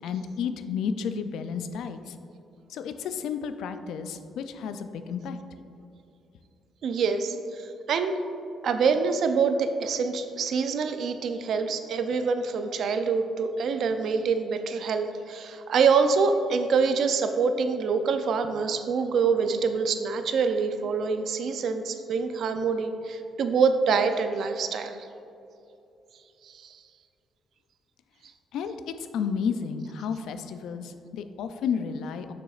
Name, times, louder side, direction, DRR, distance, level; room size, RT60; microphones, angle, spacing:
voice 1, 0.0-2.1 2.7-5.4 28.5-32.3, left 6 dB, 80° left, 9 dB, 0.3 m, -32 dB
voice 2, 6.8-8.2 8.6-25.1 26.4-26.8, right 5 dB, 65° right, 8 dB, 0.4 m, -25 dB
6.8 x 6.1 x 2.4 m, 2.7 s
cardioid pair, 90°, 0 cm